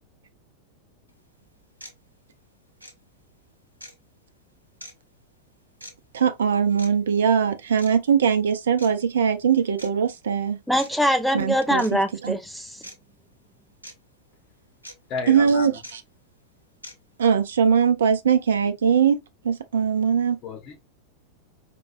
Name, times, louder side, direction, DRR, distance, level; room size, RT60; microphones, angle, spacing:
sound 1, 1.1-1.2 1.8-2.0 2.8-2.9 3.8-4.0 4.8-4.9 5.8-5.9 6.8-6.9 7.8-8.0 8.8-8.9 9.8-9.9 10.8-10.9 11.8-11.9 12.8-13.0 13.8-13.9 14.8-14.9 15.8-15.9 16.8-16.9, equal, 85° right, 0.9 m, -41 dB
voice 1, 6.1-10.6 11.3-12.4 15.3-16.0 17.2-19.2 19.4-20.4, right 7 dB, 65° right, 0.6 m, -21 dB
voice 2, 10.7-12.7, equal, ahead, 0.6 m, -23 dB
voice 3, 15.1-15.8 20.4-20.8, left 5 dB, 35° left, 1.4 m, -33 dB
4.6 x 3.0 x 2.3 m
figure-of-eight pair, 90°, 0 cm